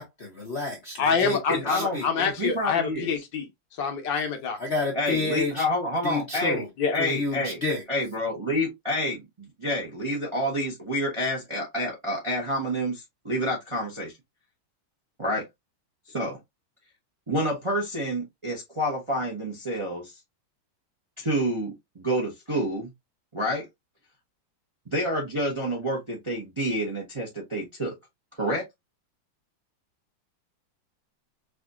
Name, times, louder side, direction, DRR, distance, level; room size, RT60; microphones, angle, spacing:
voice 1, 0.0-2.1 4.6-5.6 6.0-6.7 7.0-7.8, left 3 dB, 50° left, 0.8 m, -30 dB
voice 2, 1.0-3.5 3.8-4.6 6.8-6.9, left 6 dB, 70° left, 1.5 m, -26 dB
voice 3, 1.5-3.1 4.9-6.6 6.9-7.6 7.9-14.1 15.2-15.5 16.1-16.4 17.3-20.1 21.2-22.9 23.3-23.6 24.9-27.9 28.4-28.6, equal, 25° right, 0.6 m, -28 dB
4.9 x 2.6 x 2.4 m
omnidirectional pair, 2.1 m